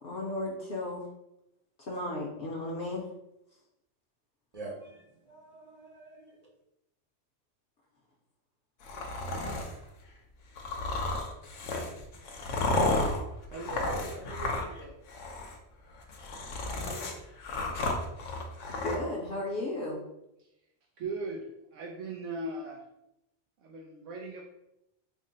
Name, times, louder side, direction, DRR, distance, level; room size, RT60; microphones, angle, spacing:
voice 1, 0.0-1.1 1.8-3.1 18.7-20.0, left 1 dB, 60° left, -3 dB, 0.8 m, -35 dB
voice 2, 4.5-6.5, right 2 dB, 45° right, -3 dB, 0.5 m, -46 dB
sound 1, 8.8-9.7 10.6-14.8 15.1-15.5 16.0-19.0, left 2 dB, 90° left, 1.0 m, -32 dB
voice 3, 13.5-14.9 20.4-20.5 21.0-22.8 23.6-24.4, right 2 dB, 90° right, -3 dB, 0.9 m, -39 dB
3.6 x 2.0 x 3.8 m, 0.85 s
omnidirectional pair, 1.2 m